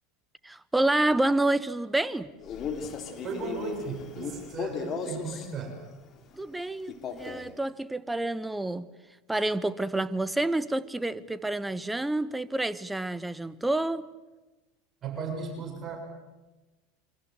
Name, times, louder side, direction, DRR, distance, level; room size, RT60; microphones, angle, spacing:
voice 1, 0.4-2.3 6.3-8.9 9.3-14.1, right 2 dB, 10° right, 1.3 m, -28 dB
Male speech man speaking, 2.4-5.5 6.9-7.5, left 5 dB, 40° left, 3.5 m, -36 dB
voice 2, 3.2-5.8 15.0-16.0, right 5 dB, 30° right, 6.8 m, -36 dB
28.0 x 24.5 x 7.9 m
hypercardioid pair, 80°, 0 cm